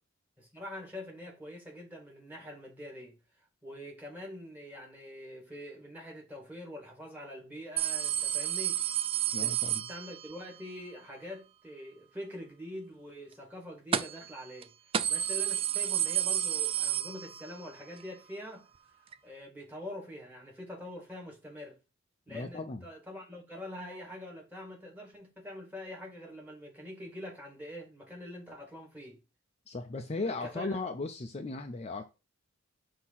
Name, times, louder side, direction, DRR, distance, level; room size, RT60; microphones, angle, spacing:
voice 1, 0.4-3.2 3.6-8.8 9.3-14.7 15.1-18.7 19.2-21.8 22.3-29.2 30.2-30.8, left 1 dB, 10° right, 1.9 m, -45 dB
sound 1, 7.8-10.5 13.9-14.3 14.6-14.7 14.9-17.7 18.0-18.1 19.1-19.2, right 10 dB, 30° right, 0.4 m, -31 dB
voice 2, 9.3-9.8 22.3-22.8 29.7-32.0, left 3 dB, 30° left, 0.5 m, -36 dB
6.2 x 2.9 x 5.6 m
head